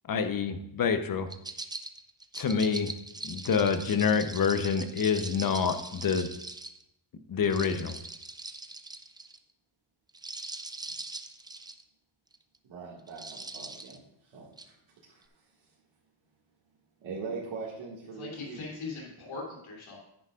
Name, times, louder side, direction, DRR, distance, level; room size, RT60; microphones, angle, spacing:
voice 1, 0.1-1.3 2.4-2.9 3.2-6.3 7.3-7.9, left 6 dB, 45° left, 9 dB, 0.9 m, -27 dB
sound 1, 1.3-6.8 7.4-9.4 10.1-11.8 12.3-12.6 13.1-14.0 14.6-14.7, right 2 dB, 10° right, 0.4 m, -41 dB
voice 2, 12.7-14.7 15.0-15.2 17.0-18.7, right 4 dB, 70° right, -6 dB, 2.1 m, -41 dB
voice 3, 18.2-20.0, left 3 dB, 80° left, -2 dB, 3.2 m, -40 dB
10.0 x 9.9 x 2.5 m, 0.79 s
cardioid pair, 105°, 47 cm